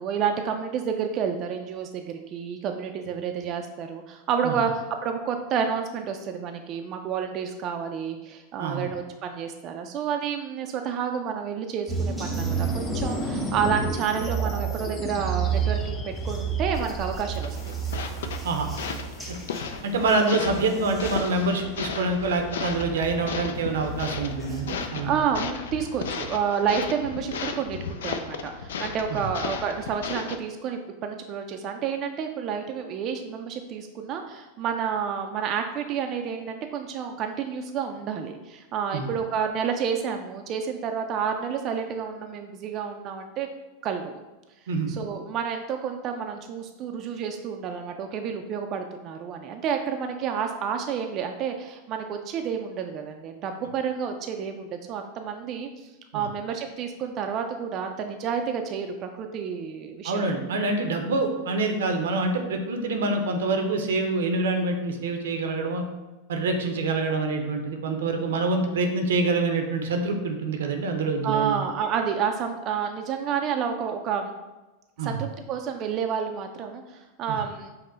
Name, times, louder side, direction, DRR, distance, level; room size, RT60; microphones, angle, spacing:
voice 1, 0.0-17.6 19.4-19.6 25.0-43.5 43.8-44.1 44.9-55.7 56.1-60.4 71.2-74.3 75.0-77.7, right 7 dB, 40° right, 4 dB, 0.3 m, -30 dB
sound 1, 11.9-24.9, right 5 dB, ahead, 0.9 m, -32 dB
sound 2, 12.3-17.3, left 3 dB, 25° left, 0.6 m, -38 dB
sound 3, 17.3-30.4, left 6 dB, 80° left, 0.4 m, -35 dB
voice 2, 18.4-18.7 19.8-25.2 29.1-29.2 38.9-39.1 44.7-44.9 56.1-56.2 60.0-65.8 66.3-71.6 75.0-75.2 77.3-77.4, right 3 dB, 85° right, 5 dB, 0.6 m, -26 dB
5.3 x 2.1 x 3.8 m, 1.1 s
hypercardioid pair, 115°, 0 cm